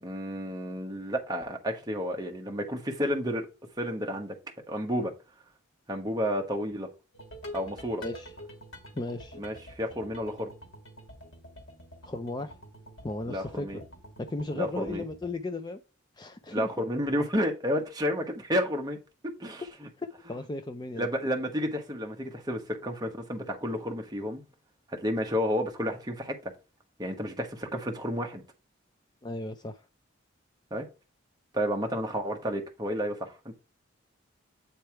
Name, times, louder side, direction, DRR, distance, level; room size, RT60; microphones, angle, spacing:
voice 1, 0.0-3.5 3.8-4.3 4.7-5.1 5.9-6.9 7.5-8.0 9.4-10.5 13.3-13.8 14.6-15.0 16.5-19.0 19.2-19.9 20.9-24.4 24.9-26.5 27.0-28.4 30.7-30.9 31.5-33.5, equal, 20° right, 1.1 m, -31 dB
sound 1, 7.1-15.4, equal, 75° left, 1.9 m, -47 dB
voice 2, 8.0-8.3 8.9-9.4 12.0-12.5 13.0-13.9 14.2-15.8 16.2-16.7 20.0-21.1 29.2-29.9, left 2 dB, 20° left, 0.4 m, -35 dB
8.5 x 3.3 x 4.5 m
head